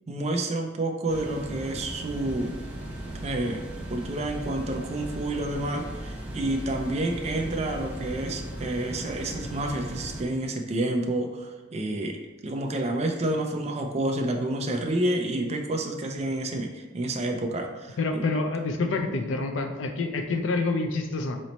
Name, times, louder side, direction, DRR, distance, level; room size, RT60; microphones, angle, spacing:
voice 1, 0.1-2.5 3.2-3.6 3.9-12.2 12.4-18.2, right 1 dB, 35° right, 3 dB, 0.4 m, -29 dB
sound 1, 1.1-10.2, right 1 dB, 5° right, 0.8 m, -37 dB
voice 2, 18.0-21.4, left 3 dB, 85° left, 6 dB, 0.5 m, -27 dB
4.0 x 3.2 x 4.1 m, 1.2 s
head